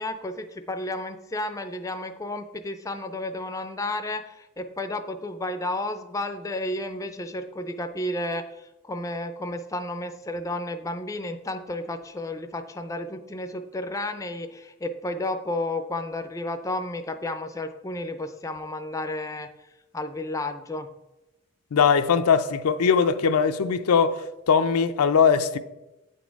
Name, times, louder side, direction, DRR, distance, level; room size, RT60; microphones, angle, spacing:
voice 1, 0.0-19.5 19.9-20.9, left 1 dB, 15° left, 0.4 m, -32 dB
voice 2, 21.7-25.6, left 6 dB, 85° left, 0.5 m, -21 dB
9.1 x 4.2 x 4.6 m
head